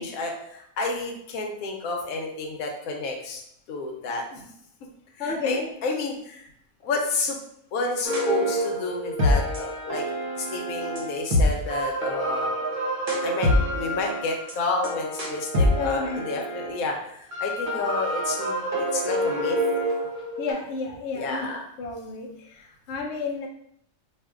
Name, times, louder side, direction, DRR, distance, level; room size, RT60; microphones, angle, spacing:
voice 1, 0.0-3.4 3.7-4.4 5.2-6.5 6.8-7.4 7.7-10.0 10.4-12.6 13.2-19.6 21.2-21.6, left 3 dB, 90° left, 1 dB, 1.1 m, -30 dB
voice 2, 5.2-5.7 15.6-16.3 20.4-21.5 21.8-23.5, left 4 dB, 65° left, 0 dB, 0.9 m, -31 dB
sound 1, 8.0-16.8 17.3-20.5, equal, 45° right, 0.8 m, -26 dB
4.5 x 2.5 x 2.4 m, 0.70 s
omnidirectional pair, 1.4 m